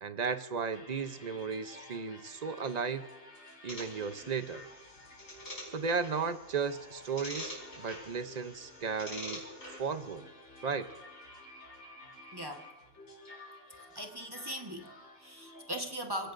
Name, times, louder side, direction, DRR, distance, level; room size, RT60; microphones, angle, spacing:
voice 1, 0.0-3.1 3.6-4.6 5.7-9.4 9.8-10.3 10.6-10.9, right 5 dB, 45° right, 11 dB, 0.6 m, -35 dB
sound 1, 0.7-15.7, left 1 dB, 55° left, 4.6 m, -53 dB
sound 2, 3.7-10.1, left 1 dB, 70° left, 5.3 m, -46 dB
voice 2, 12.3-12.7 13.9-16.3, equal, 20° right, 3 dB, 1.2 m, -39 dB
30.0 x 17.0 x 2.6 m, 1.2 s
omnidirectional pair, 1.5 m